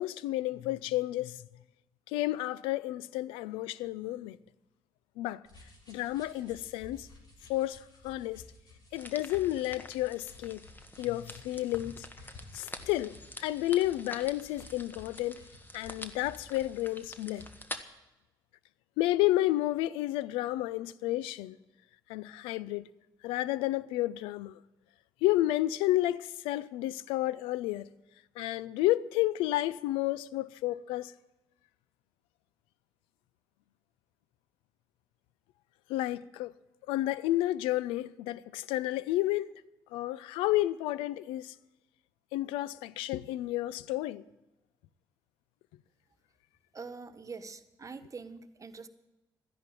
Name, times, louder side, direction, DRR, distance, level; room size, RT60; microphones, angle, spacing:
voice 1, 0.0-1.4 2.1-4.4 5.2-5.4 5.9-7.1 7.5-8.4 8.9-10.6 11.0-12.1 12.5-15.4 15.7-17.4 19.0-21.6 22.1-22.8 23.2-24.6 25.2-27.9 28.4-31.1 35.9-36.5 36.9-39.5 39.9-41.5 42.3-44.2, left 15 dB, 85° left, 0.5 m, -31 dB
sound 1, 5.5-17.7, left 3 dB, 50° left, 6.6 m, -54 dB
sound 2, 8.9-17.8, left 1 dB, 20° left, 1.6 m, -47 dB
voice 2, 46.7-48.9, right 4 dB, 40° right, 1.4 m, -44 dB
14.0 x 10.5 x 9.0 m
supercardioid pair, 55°, 9 cm